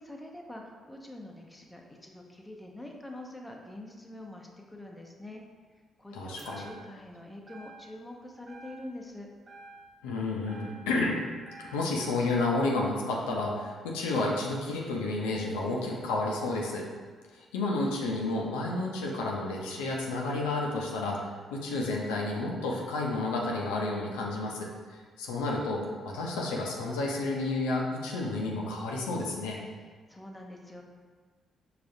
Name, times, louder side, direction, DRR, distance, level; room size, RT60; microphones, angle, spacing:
voice 1, 0.0-5.4 6.0-9.3 29.8-30.8, left 1 dB, 10° left, 0 dB, 0.6 m, -45 dB
voice 2, 6.1-6.7 10.0-11.2 11.6-16.9 17.3-29.6, left 2 dB, 85° left, -2 dB, 0.4 m, -31 dB
sound 1, 6.4-7.1 7.5-8.1 8.5-9.2 9.5-11.1 11.5-12.1, right 2 dB, 40° right, 1.2 m, -51 dB
4.8 x 2.4 x 2.6 m, 1.5 s
hypercardioid pair, 50°, 0 cm